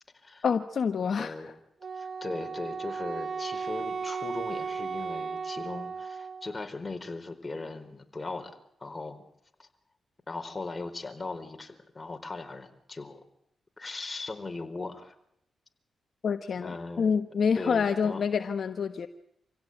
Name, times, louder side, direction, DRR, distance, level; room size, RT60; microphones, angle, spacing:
voice 1, 0.4-1.3 16.2-19.1, left 6 dB, 65° left, 7 dB, 1.2 m, -27 dB
voice 2, 1.0-1.5 2.0-8.5 8.8-9.2 9.6-9.7 10.3-13.2 13.8-15.1 16.6-17.1 17.6-18.2, left 3 dB, 30° left, 5 dB, 4.4 m, -38 dB
Wind instrument woodwind instrument, 1.8-6.6, right 5 dB, 50° right, 1.1 m, -35 dB
26.5 x 16.5 x 9.2 m, 0.77 s
cardioid pair, 55°, 0 cm